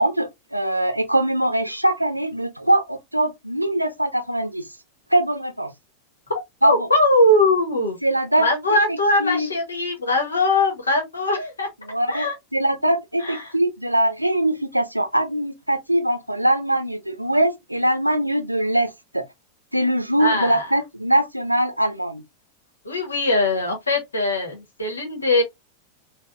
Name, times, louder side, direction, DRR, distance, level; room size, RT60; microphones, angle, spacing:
voice 1, 0.0-4.7 5.1-5.7 6.6-6.9 8.0-8.8 9.2-9.5 11.8-19.2 19.7-22.2, right 1 dB, 90° right, 0.6 m, -22 dB
voice 2, 6.6-8.0 8.4-11.7 12.1-12.3 13.2-13.5 20.2-20.7 22.8-25.4, left 1 dB, 75° left, 1.2 m, -21 dB
3.5 x 2.3 x 2.2 m
figure-of-eight pair, 90°, 0 cm